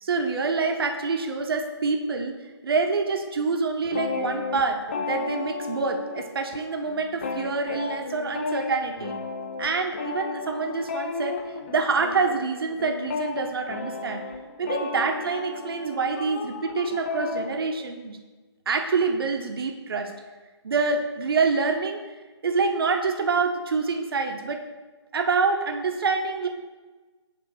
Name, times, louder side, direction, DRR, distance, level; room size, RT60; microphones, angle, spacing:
voice 1, 0.0-2.3 2.6-9.2 9.6-11.4 11.7-14.2 14.6-18.2 18.7-20.1 20.6-22.0 22.4-24.6 25.1-26.5, right 4 dB, 55° right, 4 dB, 0.8 m, -26 dB
sound 1, 3.8-6.6 6.9-17.5, left 4 dB, 25° left, 0.4 m, -33 dB
6.7 x 3.3 x 6.1 m, 1.3 s
figure-of-eight pair, 150°, 15 cm